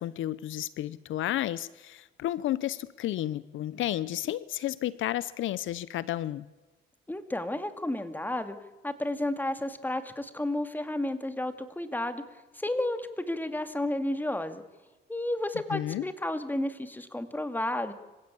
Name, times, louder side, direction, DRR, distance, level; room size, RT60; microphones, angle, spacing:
voice 1, 0.0-6.4 15.7-16.1, left 13 dB, 80° left, 18 dB, 0.8 m, -32 dB
voice 2, 7.1-8.6 8.8-12.2 12.6-14.6 15.1-17.9, left 1 dB, 10° left, 9 dB, 2.4 m, -32 dB
26.0 x 16.5 x 8.5 m, 1.2 s
cardioid pair, 90°, 20 cm